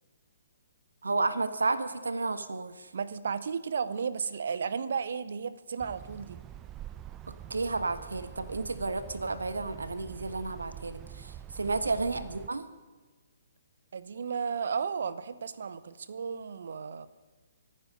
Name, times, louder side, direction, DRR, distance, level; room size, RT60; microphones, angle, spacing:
voice 1, 1.0-2.9 7.5-12.7, right 3 dB, 70° right, 11 dB, 1.2 m, -32 dB
voice 2, 2.9-6.4 11.6-11.7 13.9-17.1, right 6 dB, 55° right, 15 dB, 0.9 m, -34 dB
sound 1, 5.8-12.5, right 11 dB, 20° right, 0.7 m, -46 dB
24.5 x 9.7 x 5.4 m, 1.3 s
figure-of-eight pair, 130°, 0 cm